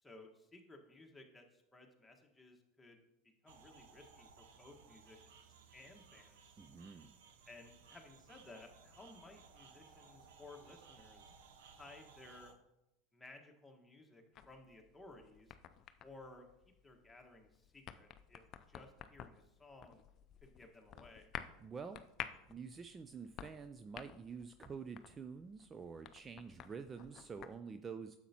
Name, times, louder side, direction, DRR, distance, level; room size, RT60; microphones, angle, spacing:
voice 1, 0.0-3.0 3.4-5.2 5.7-6.4 7.5-11.3 11.7-12.5 13.1-15.6 16.0-16.5 16.8-20.0 20.4-21.3, left 2 dB, 10° left, 2 dB, 1.5 m, -58 dB
sound 1, 3.5-12.5, right 5 dB, 75° right, 0.7 m, -61 dB
voice 2, 6.6-7.1 21.6-22.0 22.5-28.2, right 5 dB, 25° right, 9 dB, 0.4 m, -48 dB
sound 2, 14.3-27.6, left 9 dB, 45° left, 0.5 m, -53 dB
9.8 x 7.2 x 2.9 m, 0.86 s
hypercardioid pair, 85°, 0 cm